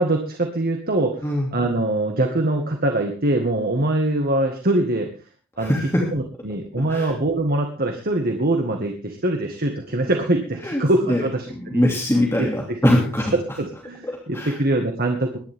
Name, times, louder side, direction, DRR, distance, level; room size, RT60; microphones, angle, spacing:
voice 1, 0.0-1.2 1.5-5.1 5.6-5.7 6.1-11.8 12.4-12.8 13.3-15.4, right 1 dB, 45° right, 3 dB, 1.9 m, -23 dB
voice 2, 5.6-6.0 6.9-7.1 10.6-10.8 11.1-11.2 11.6-13.3 14.3-14.5, left 1 dB, 10° left, -2 dB, 2.7 m, -21 dB
22.5 x 11.0 x 3.7 m, 0.37 s
head